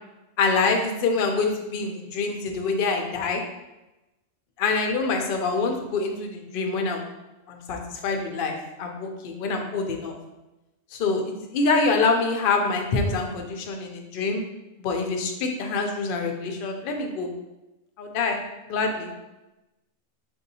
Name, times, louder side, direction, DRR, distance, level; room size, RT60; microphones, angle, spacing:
voice 1, 0.4-3.4 4.6-7.0 7.5-10.1 10.9-14.4 14.8-17.3 18.0-18.4 18.7-19.1, left 4 dB, 60° left, 3 dB, 0.6 m, -25 dB
4.1 x 2.7 x 2.7 m, 1.0 s
omnidirectional pair, 1.3 m